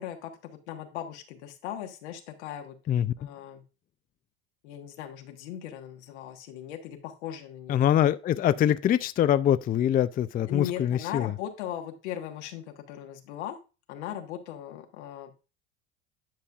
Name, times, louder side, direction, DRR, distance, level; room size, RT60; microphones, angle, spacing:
voice 1, 0.0-2.8 3.2-3.6 4.6-7.9 10.5-13.6 13.9-15.4, left 10 dB, 85° left, 1.3 m, -38 dB
voice 2, 7.7-11.3, left 10 dB, 25° left, 0.4 m, -24 dB
10.0 x 5.3 x 2.3 m
supercardioid pair, 90°, 33 cm